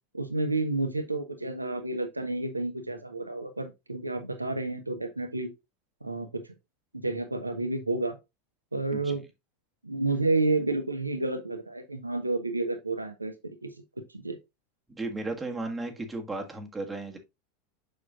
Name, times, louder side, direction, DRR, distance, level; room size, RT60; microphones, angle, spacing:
voice 1, 0.1-5.5 6.0-6.4 6.9-8.2 8.7-9.2 9.8-13.3 13.6-13.7 14.1-14.4, right 2 dB, 90° right, 1.1 m, -30 dB
voice 2, 14.9-17.2, right 2 dB, 10° right, 1.6 m, -35 dB
6.7 x 6.1 x 2.5 m
figure-of-eight pair, 85°, 0 cm